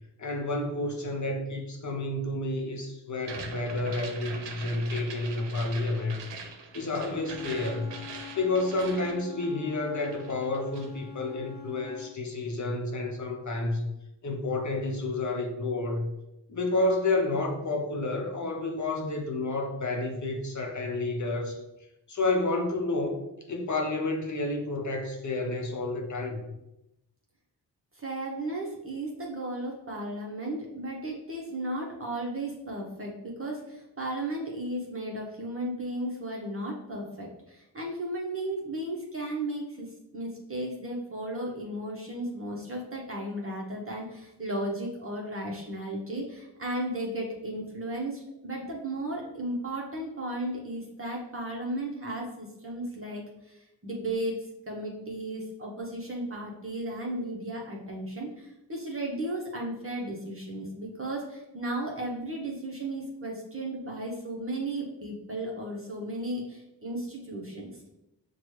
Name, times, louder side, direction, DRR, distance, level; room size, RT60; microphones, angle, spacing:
voice 1, 0.2-6.2 6.7-7.9 8.4-13.9 14.2-16.1 16.5-21.6 22.1-23.2 23.5-26.4, left 2 dB, 45° left, 2 dB, 0.8 m, -30 dB
sound 1, 3.2-9.7 10.0-11.0, right 4 dB, 85° right, 0.7 m, -42 dB
Wind instrument woodwind instrument, 7.1-12.1, left 11 dB, 25° left, 0.4 m, -45 dB
voice 2, 27.9-54.4 54.7-67.9, right 1 dB, 30° right, -2 dB, 0.8 m, -35 dB
6.0 x 2.2 x 3.1 m, 0.89 s
cardioid pair, 80°, 41 cm